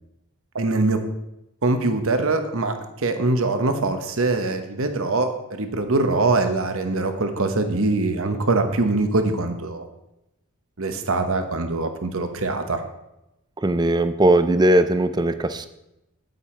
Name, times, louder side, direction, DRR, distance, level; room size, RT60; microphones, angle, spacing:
voice 1, 0.5-1.0 1.6-9.8 10.8-12.8, right 2 dB, 60° right, 7 dB, 1.1 m, -23 dB
voice 2, 13.6-15.7, right 1 dB, 20° right, 10 dB, 0.5 m, -19 dB
9.2 x 9.2 x 4.5 m, 0.89 s
head